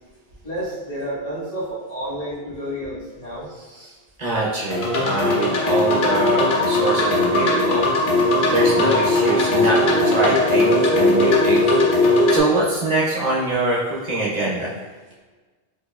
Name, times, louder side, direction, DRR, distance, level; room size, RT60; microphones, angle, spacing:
voice 1, 0.4-3.5, equal, 35° left, -10 dB, 1.3 m, -30 dB
voice 2, 4.2-7.9 8.5-11.6 12.3-14.7, right 2 dB, 45° right, -5 dB, 0.7 m, -23 dB
sound 1, 4.7-12.4, left 2 dB, 55° left, 0.7 m, -18 dB
4.3 x 2.7 x 2.3 m, 1.3 s
omnidirectional pair, 1.1 m